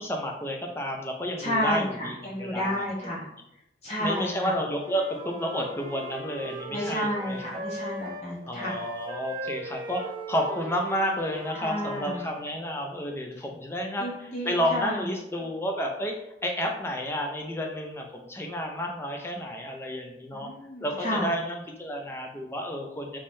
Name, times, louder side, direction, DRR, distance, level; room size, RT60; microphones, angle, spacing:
voice 1, 0.0-3.1 4.0-7.6 8.5-16.1 16.4-20.5 20.8-23.2, equal, 15° left, 2 dB, 0.5 m, -31 dB
voice 2, 1.4-3.3 3.8-4.6 6.7-8.8 11.6-12.2 14.0-15.1 20.3-21.3, equal, 35° left, -6 dB, 0.8 m, -31 dB
Wind instrument woodwind instrument, 4.6-8.3 8.6-12.4, right 2 dB, 25° right, 0.7 m, -39 dB
3.6 x 3.1 x 2.6 m, 0.81 s
head